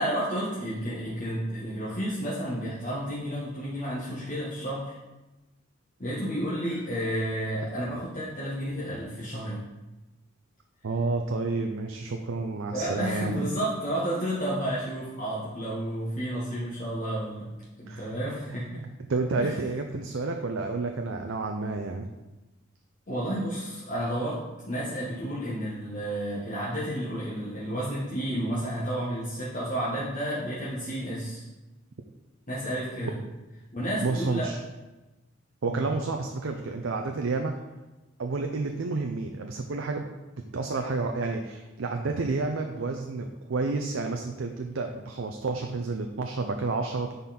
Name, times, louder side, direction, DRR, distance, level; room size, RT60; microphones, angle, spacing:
voice 1, 0.0-5.0 6.0-9.6 12.7-17.5 17.8-18.8 19.4-19.5 23.1-24.4 24.7-31.5 32.5-33.2 33.7-34.5 35.6-35.8, equal, 40° left, -8 dB, 1.5 m, -31 dB
voice 2, 10.8-13.5 17.9-18.1 18.7-22.1 34.0-34.6 35.6-37.5 38.2-40.1 40.5-47.1, right 3 dB, 75° right, 4 dB, 0.5 m, -30 dB
9.3 x 4.1 x 4.2 m, 1.1 s
head